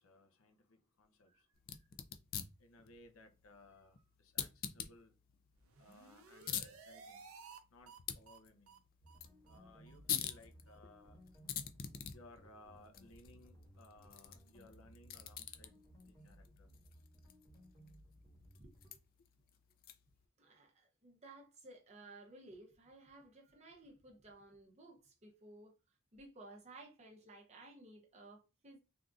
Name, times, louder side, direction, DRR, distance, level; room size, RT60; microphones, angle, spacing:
voice 1, 0.0-1.5 2.6-5.2 5.8-7.3 7.7-8.8 9.5-11.2 12.1-15.8 16.0-16.7, left 2 dB, 80° left, 0.7 m, -62 dB
sound 1, 1.6-20.2, left 9 dB, 45° left, 0.3 m, -47 dB
sound 2, 5.6-7.6 7.9-8.0 8.3-8.4 8.7-8.8 9.1-9.2 9.5-9.6 9.9-10.0 10.3-10.4 10.7-10.8, right 5 dB, 90° right, 0.6 m, -56 dB
sound 3, 9.0-18.9, equal, 10° left, 1.1 m, -61 dB
voice 2, 20.4-25.7 26.1-28.8, right 2 dB, 30° right, 0.7 m, -57 dB
3.5 x 2.5 x 2.4 m
head